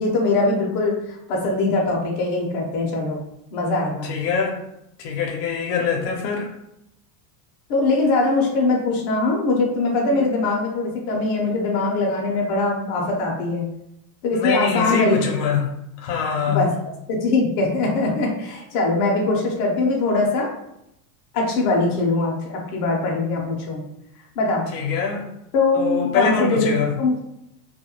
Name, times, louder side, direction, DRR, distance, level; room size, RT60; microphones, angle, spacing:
voice 1, 0.0-3.2 3.5-4.1 7.7-13.7 14.2-15.2 16.5-20.5 21.3-23.8 24.4-24.7 25.5-27.1, left 3 dB, 45° left, -1 dB, 0.7 m, -22 dB
voice 2, 4.0-4.6 5.0-6.5 10.1-10.2 14.3-15.7 16.0-16.7 24.7-25.2 25.7-26.9, left 5 dB, 80° left, 1 dB, 0.8 m, -23 dB
2.4 x 2.1 x 2.9 m, 0.82 s
supercardioid pair, 130°, 48 cm